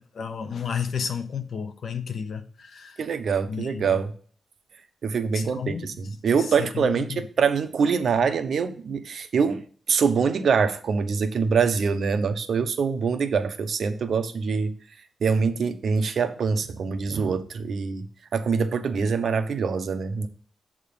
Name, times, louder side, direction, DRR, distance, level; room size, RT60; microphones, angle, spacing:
voice 1, 0.2-3.0 3.5-4.0 5.3-6.1 6.4-7.2, left 7 dB, 60° left, 0.8 m, -32 dB
voice 2, 3.0-4.1 5.0-14.7 15.2-18.1 18.3-20.3, right 5 dB, 60° right, 0.8 m, -24 dB
7.8 x 3.7 x 6.7 m
wide cardioid pair, 150°, 0 cm